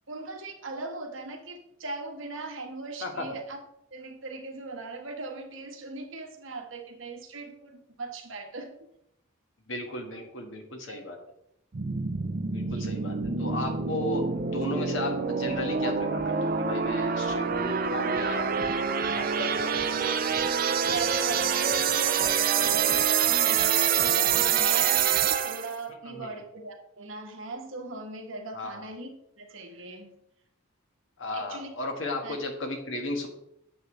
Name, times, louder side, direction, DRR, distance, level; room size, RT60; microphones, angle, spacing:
voice 1, 0.1-3.6 3.9-8.7 10.1-10.2 10.9-11.0 12.6-13.0 20.5-30.2 31.3-31.7 32.2-32.4, right 3 dB, 70° right, 3 dB, 1.5 m, -39 dB
voice 2, 9.7-11.2 12.5-18.5 19.0-19.8 20.3-20.4 26.0-26.3 28.5-28.8 31.2-33.3, left 2 dB, 65° left, 3 dB, 1.7 m, -35 dB
sound 1, 11.7-25.7, right 7 dB, 45° right, 0.5 m, -26 dB
9.2 x 7.3 x 3.2 m, 0.77 s
head